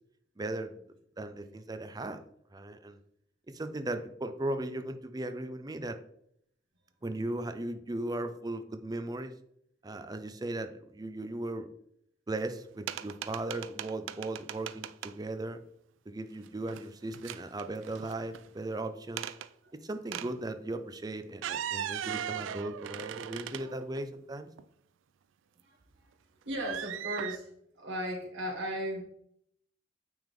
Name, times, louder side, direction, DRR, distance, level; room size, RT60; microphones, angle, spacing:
voice 1, 0.4-0.8 1.2-2.2 2.5-3.0 3.5-6.0 7.0-9.3 9.8-11.7 12.3-15.6 16.1-19.3 19.7-24.5, right 2 dB, 20° right, 9 dB, 0.5 m, -37 dB
sound 1, 12.9-15.1 16.5-16.9 17.1-18.5 19.2-19.5 20.1-20.3 21.3-24.0 24.6-24.7 26.6-27.4, right 10 dB, 90° right, 0.3 m, -38 dB
voice 2, 26.4-29.0, equal, 75° right, -2 dB, 2.5 m, -36 dB
8.9 x 3.5 x 3.6 m, 0.70 s
head